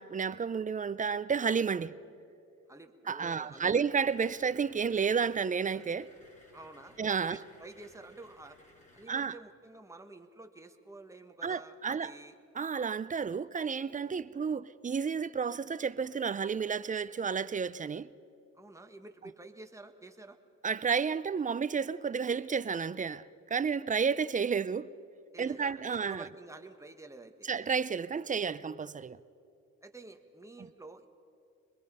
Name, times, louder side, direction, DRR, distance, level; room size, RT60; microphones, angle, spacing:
voice 1, 0.0-2.0 3.1-6.1 7.0-7.4 9.1-9.3 11.4-12.1 12.6-18.1 20.6-24.9 25.4-26.3 27.5-29.2, right 6 dB, 25° right, 0.5 m, -31 dB
voice 2, 2.7-3.8 6.5-8.6 8.9-12.4 14.0-14.2 18.5-20.4 25.3-27.5 29.8-31.1, right 2 dB, 10° right, 1.4 m, -50 dB
sound 1, 3.9-9.2, left 1 dB, 25° left, 3.2 m, -60 dB
24.5 x 21.0 x 5.5 m
cardioid pair, 90°, 30 cm